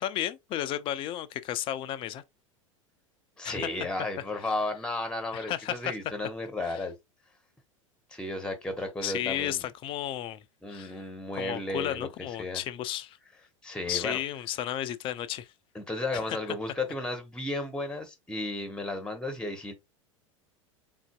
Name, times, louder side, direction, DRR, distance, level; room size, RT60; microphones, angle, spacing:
voice 1, 0.0-2.2 3.4-3.6 5.3-6.0 6.6-6.8 9.0-11.0 11.4-13.2 13.9-15.5 16.1-16.4, left 12 dB, 30° left, 0.4 m, -33 dB
voice 2, 3.4-6.9 8.1-9.6 10.6-12.1 12.4-12.6 13.6-14.2 15.7-19.7, left 2 dB, 5° left, 0.8 m, -34 dB
3.8 x 2.6 x 2.3 m
figure-of-eight pair, 85°, 17 cm